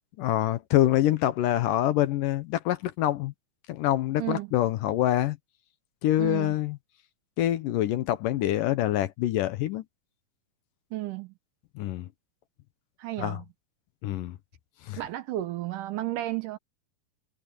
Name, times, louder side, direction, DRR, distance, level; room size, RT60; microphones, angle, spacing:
voice 1, 0.2-3.3 3.7-5.4 6.0-6.8 7.4-9.8 11.8-12.1 13.2-13.4 14.0-14.4 14.9-15.0, left 13 dB, 75° left, 2.3 m, -25 dB
voice 2, 4.2-4.5 6.2-6.5 10.9-11.3 13.0-13.4 15.0-16.6, right 15 dB, 75° right, 2.1 m, -33 dB
omnidirectional pair, 4.3 m